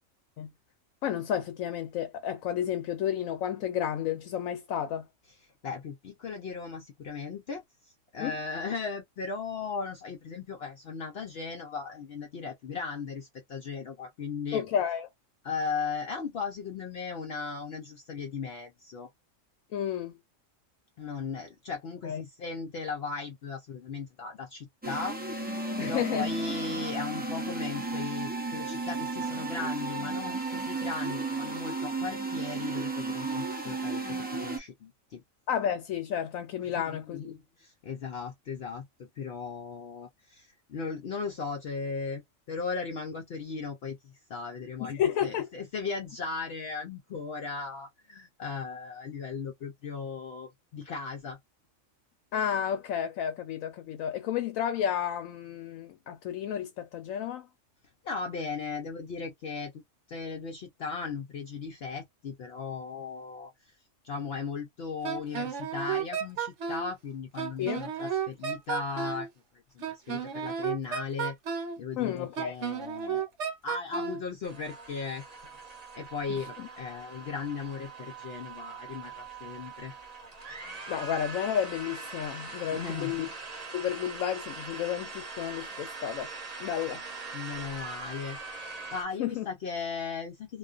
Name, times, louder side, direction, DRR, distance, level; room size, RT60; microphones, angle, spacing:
voice 1, 1.0-5.1 8.2-8.3 14.5-15.1 19.7-20.2 22.0-22.2 25.8-26.3 35.5-37.3 44.8-45.5 52.3-57.5 67.6-67.8 72.0-72.5 76.4-76.7 80.9-83.3 83.7-86.3 86.6-87.0 89.2-89.5, left 9 dB, 85° left, 1.0 m, -31 dB
voice 2, 5.6-14.6 15.4-19.1 21.0-25.2 25.8-35.2 36.6-42.2 42.5-51.4 58.0-59.8 60.1-63.8 64.0-69.3 69.7-71.4 71.8-73.3 73.6-75.2 75.9-79.9 82.7-83.3 87.3-88.4 88.9-90.6, left 5 dB, 60° left, 0.7 m, -37 dB
sound 1, 24.8-34.6, right 3 dB, 15° right, 0.3 m, -33 dB
Wind instrument woodwind instrument, 65.0-66.9 67.4-69.3 69.8-71.8 72.4-74.2, right 7 dB, 65° right, 1.0 m, -32 dB
sound 2, 74.4-89.0, right 4 dB, 35° right, 0.8 m, -42 dB
2.4 x 2.2 x 2.4 m
omnidirectional pair, 1.4 m